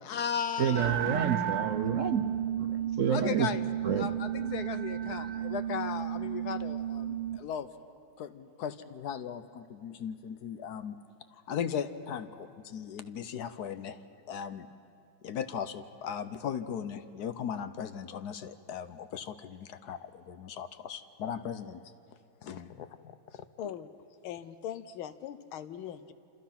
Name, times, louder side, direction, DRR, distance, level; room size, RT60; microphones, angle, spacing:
voice 1, 0.0-1.0 3.1-3.6 4.0-7.7 8.2-11.0 11.5-14.0 14.3-14.7 15.2-21.8 22.4-22.9 23.3-23.4, left 8 dB, 60° left, 11 dB, 1.1 m, -37 dB
voice 2, 0.6-2.2 2.6-2.7 3.0-3.5 3.8-4.1, right 8 dB, 65° right, 8 dB, 0.7 m, -29 dB
sound 1, 0.7-7.4, right 10 dB, 90° right, 1.8 m, -33 dB
voice 3, 23.6-23.9 24.2-26.1, left 9 dB, 80° left, 12 dB, 1.7 m, -40 dB
27.5 x 27.0 x 5.8 m, 2.5 s
omnidirectional pair, 2.2 m